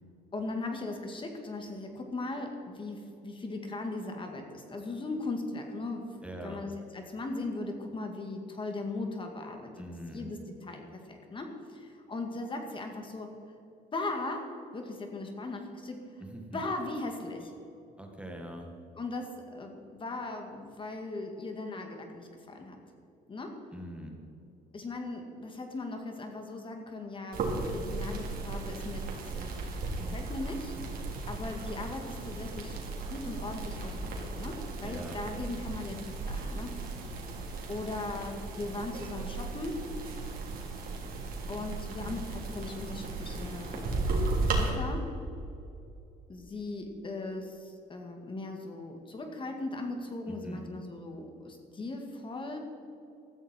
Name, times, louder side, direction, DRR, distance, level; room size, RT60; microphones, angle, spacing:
voice 1, 0.3-6.2 6.4-9.7 10.1-13.4 13.9-16.1 16.5-17.5 19.0-22.8 23.3-23.6 24.7-29.1 29.3-30.8 31.3-32.8 33.1-36.7 37.7-39.9 41.5-45.1 46.3-52.6, left 2 dB, 30° left, 4 dB, 2.0 m, -38 dB
voice 2, 6.2-6.6 9.8-10.3 16.2-16.6 18.0-18.7 23.7-24.2 34.8-35.2 50.3-50.7, right 1 dB, 5° right, 1 dB, 1.8 m, -42 dB
sound 1, 27.3-44.7, right 3 dB, 60° right, 3.4 m, -35 dB
15.5 x 13.5 x 4.4 m, 2.7 s
cardioid pair, 110°, 17 cm